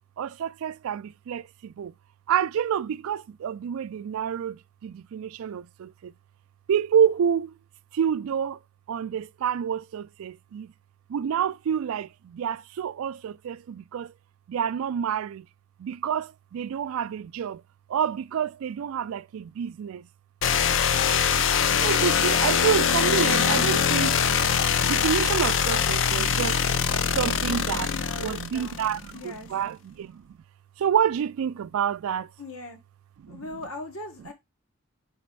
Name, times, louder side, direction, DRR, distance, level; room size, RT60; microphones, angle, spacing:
voice 1, 0.0-1.9 2.3-6.1 6.7-7.5 7.9-8.6 8.9-10.7 11.1-14.1 14.5-15.5 15.8-17.6 17.9-20.1 21.8-24.2 24.8-26.6 27.1-27.9 28.2-30.2 30.8-32.3 33.2-33.5, right 8 dB, 70° right, 0.3 m, -28 dB
sound 1, 20.4-29.1, left 7 dB, 55° left, 0.5 m, -23 dB
voice 2, 27.9-28.8 29.1-29.5 32.4-32.8 33.3-34.3, left 2 dB, 75° left, 1.5 m, -39 dB
5.1 x 4.2 x 4.6 m
head